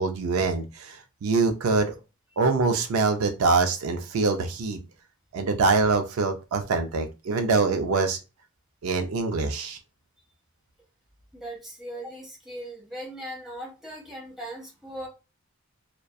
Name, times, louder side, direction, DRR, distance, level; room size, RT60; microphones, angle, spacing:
voice 1, 0.0-1.9 2.4-4.8 5.3-8.2 8.8-9.8, right 4 dB, 75° right, 6 dB, 0.4 m, -24 dB
voice 2, 11.3-15.1, right 1 dB, ahead, -4 dB, 1.0 m, -39 dB
2.5 x 2.1 x 2.3 m, 0.29 s
head